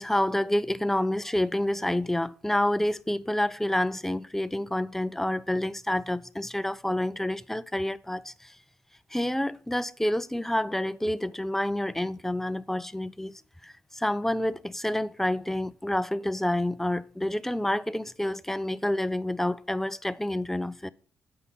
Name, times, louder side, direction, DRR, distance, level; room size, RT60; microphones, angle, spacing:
voice 1, 0.0-8.6 9.1-20.9, left 1 dB, 5° left, 0.4 m, -28 dB
8.2 x 5.5 x 5.7 m
cardioid pair, 100°, 5 cm